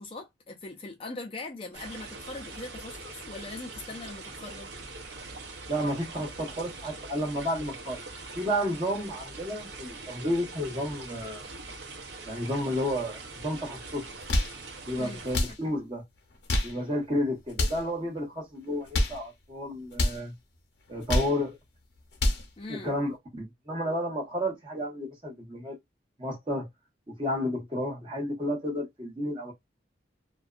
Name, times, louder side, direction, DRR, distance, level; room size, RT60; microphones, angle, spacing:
voice 1, 0.0-4.7 15.0-15.2 22.6-23.0, left 2 dB, 30° left, 0.4 m, -41 dB
sound 1, 1.7-15.4, right 3 dB, 75° right, 0.7 m, -43 dB
voice 2, 5.7-8.1 8.3-11.5 12.3-14.1 14.9-16.0 16.6-20.3 20.9-21.6 22.7-25.8 26.2-26.7 27.1-29.5, equal, 30° right, 1.0 m, -31 dB
sound 2, 14.1-14.6 15.3-15.6 16.3-16.8 17.5-17.9 18.7-19.2 19.9-20.2 20.9-21.4 22.0-22.5, left 1 dB, 80° left, 0.7 m, -27 dB
2.5 x 2.2 x 2.4 m
head